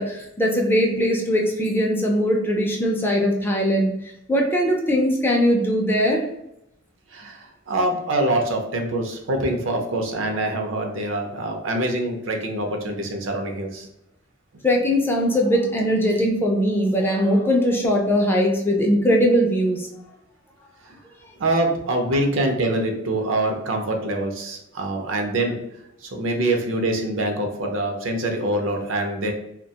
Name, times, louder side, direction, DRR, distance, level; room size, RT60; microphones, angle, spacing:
voice 1, 0.0-4.0 4.3-6.2 14.6-19.9, equal, 10° left, 0 dB, 0.3 m, -20 dB
voice 2, 7.1-13.9 20.8-21.0 21.4-25.6 26.0-29.3, right 1 dB, 75° right, 3 dB, 0.5 m, -25 dB
2.3 x 2.2 x 2.7 m, 0.80 s
head